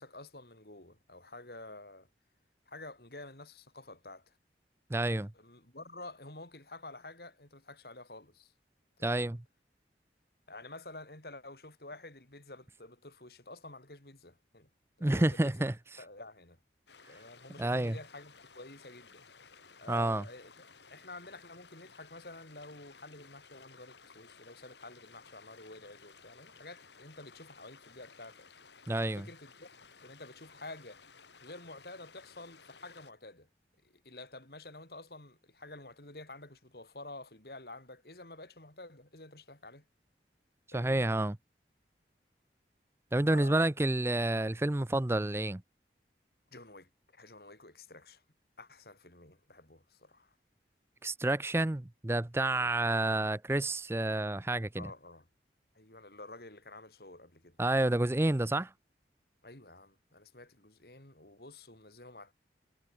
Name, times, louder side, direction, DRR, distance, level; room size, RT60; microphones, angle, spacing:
voice 1, 0.0-2.1 2.7-4.4 4.9-8.5 9.0-9.4 10.5-14.7 15.0-15.7 16.0-16.6 17.1-19.2 19.8-20.5 20.9-28.5 29.1-29.7 30.0-31.0 31.4-33.5 33.8-39.9 40.7-41.1 43.2-43.7 46.5-48.2 48.6-50.3 52.5-52.8 54.8-55.3 55.7-57.6 59.4-62.3, left 2 dB, 60° left, 4.8 m, -50 dB
voice 2, 4.9-5.3 9.0-9.4 15.0-15.7 17.6-18.0 19.9-20.2 28.9-29.3 40.7-41.4 43.1-45.6 51.0-54.9 57.6-58.7, right 1 dB, 15° right, 0.5 m, -29 dB
sound 1, 16.9-33.1, left 5 dB, 85° left, 4.5 m, -57 dB
head